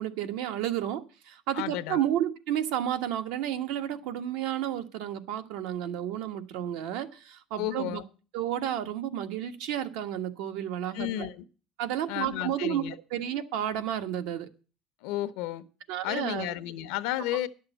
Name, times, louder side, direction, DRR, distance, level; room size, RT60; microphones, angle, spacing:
voice 1, 0.0-8.0 8.3-11.3 11.8-12.8 13.1-14.5 15.9-16.5 17.3-17.4, right 11 dB, 85° right, 1.3 m, -31 dB
voice 2, 1.5-2.0 7.6-8.0 10.9-11.3 12.1-12.9 15.0-15.6 16.0-17.5, left 14 dB, 85° left, 0.9 m, -32 dB
11.0 x 6.5 x 8.1 m
cardioid pair, 150°, 0 cm